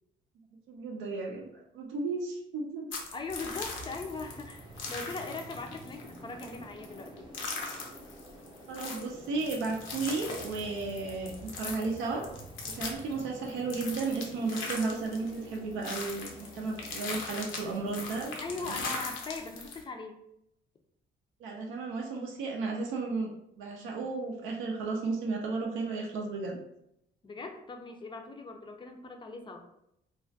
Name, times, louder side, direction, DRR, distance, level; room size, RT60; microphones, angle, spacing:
voice 1, 0.7-2.9 6.4-6.5 8.7-12.3 12.7-18.3 18.6-18.8 21.4-23.3 23.6-26.6, right 3 dB, 90° right, 0 dB, 0.4 m, -34 dB
sound 1, 2.9-19.8, left 3 dB, 75° left, 0.6 m, -40 dB
voice 2, 3.1-7.3 18.4-20.2 27.2-29.7, left 3 dB, 25° left, 5 dB, 0.4 m, -40 dB
sound 2, 3.3-18.9, right 1 dB, 25° right, 0.5 m, -49 dB
2.3 x 2.1 x 2.6 m, 0.79 s
cardioid pair, 90°, 20 cm